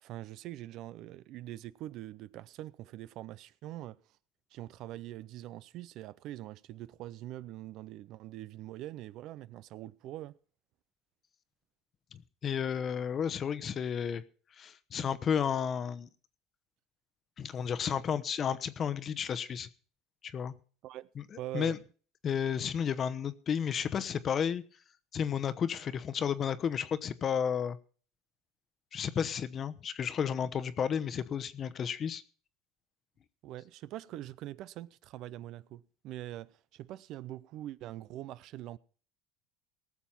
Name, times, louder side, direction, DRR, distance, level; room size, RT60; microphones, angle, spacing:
voice 1, 0.0-4.0 4.5-10.4 20.8-21.1 21.4-21.8 33.4-38.8, right 14 dB, 55° right, 0.5 m, -43 dB
voice 2, 12.1-14.2 14.6-16.1 17.4-19.7 20.2-20.5 21.2-21.3 21.5-21.8 22.2-24.6 25.1-27.8 28.9-32.2, left 7 dB, 35° left, 0.9 m, -32 dB
19.0 x 7.2 x 5.8 m
supercardioid pair, 125°, 0 cm